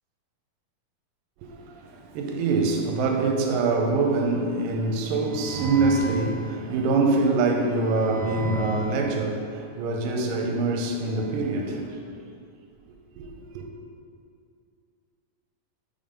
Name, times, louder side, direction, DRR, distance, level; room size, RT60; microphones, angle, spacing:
voice 1, 1.5-12.0 13.2-13.3 13.6-13.7, right 3 dB, 80° right, 2.2 m, -24 dB
5.6 x 5.6 x 5.1 m
omnidirectional pair, 4.2 m